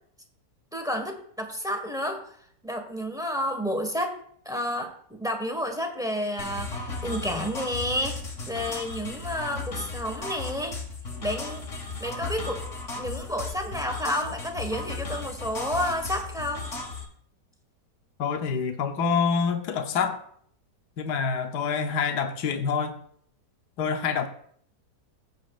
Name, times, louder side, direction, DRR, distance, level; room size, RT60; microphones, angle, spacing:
voice 1, 0.7-2.3 2.6-4.1 4.4-8.2 8.5-10.8 11.2-11.6 12.0-12.6 12.9-16.7, equal, ahead, 4 dB, 1.3 m, -30 dB
sound 1, 6.4-17.0, left 3 dB, 45° left, 2.1 m, -35 dB
voice 2, 18.2-20.2 21.0-22.9 23.8-24.3, left 6 dB, 70° left, 5 dB, 1.5 m, -26 dB
16.0 x 7.4 x 2.5 m, 0.63 s
omnidirectional pair, 1.8 m